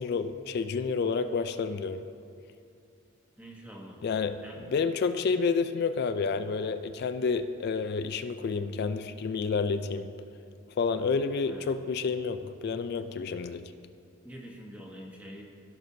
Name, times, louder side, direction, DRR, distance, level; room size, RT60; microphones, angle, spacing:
voice 1, 0.0-2.0 4.0-4.4 4.7-10.1 10.8-13.6, left 5 dB, 50° left, 10 dB, 0.3 m, -29 dB
voice 2, 3.4-4.0 4.4-4.6 11.4-11.7 14.2-15.4, equal, 5° right, -1 dB, 1.1 m, -45 dB
16.5 x 6.0 x 2.8 m, 2.7 s
head